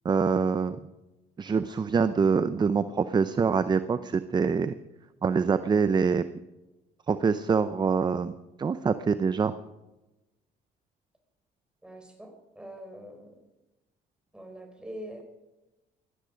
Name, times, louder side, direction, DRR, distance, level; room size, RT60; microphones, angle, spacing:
voice 1, 0.0-0.8 1.4-4.7 5.2-6.2 7.1-9.5, right 5 dB, 25° right, 13 dB, 0.6 m, -25 dB
voice 2, 11.8-13.4 14.3-15.2, right 1 dB, 5° right, 4 dB, 4.2 m, -44 dB
17.5 x 13.0 x 5.1 m, 1.0 s
cardioid pair, 110°, 17 cm